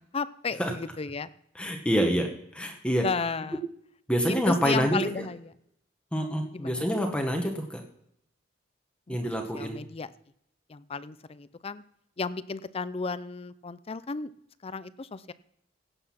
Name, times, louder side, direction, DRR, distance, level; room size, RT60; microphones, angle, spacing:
voice 1, 0.1-1.3 3.0-3.6 4.3-5.5 6.5-6.9 9.1-10.1 10.7-11.8 12.2-14.3 14.6-15.3, left 4 dB, 30° left, 15 dB, 0.5 m, -33 dB
voice 2, 1.6-2.3 2.5-3.0 4.1-5.0 6.1-7.8 9.1-9.8, equal, 5° left, 2 dB, 1.2 m, -26 dB
16.5 x 7.9 x 5.8 m, 0.77 s
head